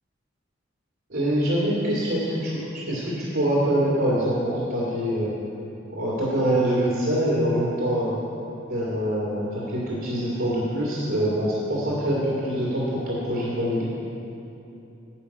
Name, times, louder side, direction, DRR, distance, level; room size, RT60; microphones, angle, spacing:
voice 1, 1.1-5.3 5.9-8.2 8.7-13.9, equal, 70° right, -8 dB, 2.5 m, -24 dB
10.0 x 5.4 x 8.4 m, 2.8 s
head